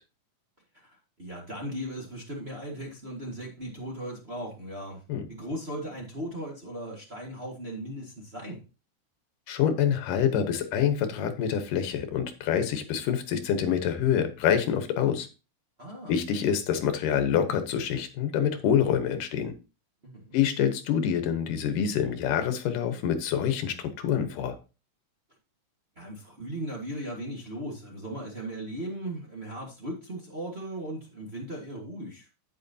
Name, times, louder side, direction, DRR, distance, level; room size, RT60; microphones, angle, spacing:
voice 1, 0.7-5.0 5.3-8.6 15.8-16.1 20.0-20.4 25.9-32.3, right 1 dB, 25° right, -1 dB, 1.4 m, -37 dB
voice 2, 9.5-15.3 16.1-19.5 20.3-24.6, left 8 dB, 90° left, 9 dB, 2.8 m, -26 dB
9.2 x 9.1 x 2.8 m, 0.31 s
omnidirectional pair, 3.7 m